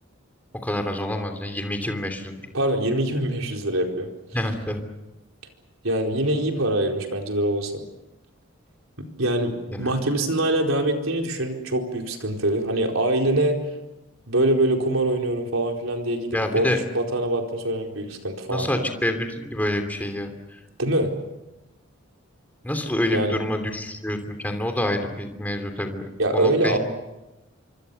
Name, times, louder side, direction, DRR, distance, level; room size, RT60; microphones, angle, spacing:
voice 1, 0.6-2.3 4.3-4.8 9.7-9.9 16.3-16.8 18.5-20.6 22.6-26.8, left 1 dB, 10° left, 6 dB, 3.0 m, -27 dB
voice 2, 2.5-4.1 5.8-7.8 9.0-13.6 14.3-16.7 16.9-18.9 20.8-21.1 23.1-23.4 26.2-26.8, right 1 dB, 80° right, 2 dB, 4.4 m, -24 dB
26.0 x 25.0 x 7.0 m, 0.99 s
head